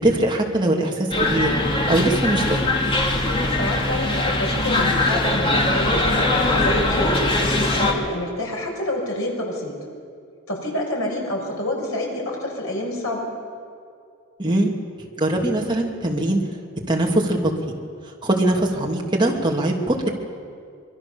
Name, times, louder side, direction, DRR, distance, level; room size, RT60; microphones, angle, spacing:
voice 1, 0.0-1.5 1.9-2.7 14.4-14.7 15.2-16.4 16.9-17.5 18.2-20.1, right 1 dB, 20° right, -1 dB, 2.8 m, -21 dB
sound 1, 1.1-7.9, left 2 dB, 25° left, 2.4 m, -21 dB
voice 2, 3.5-7.2 7.6-9.7 10.5-13.3, left 1 dB, 70° left, -1 dB, 6.6 m, -28 dB
25.5 x 22.5 x 7.1 m, 2.3 s
head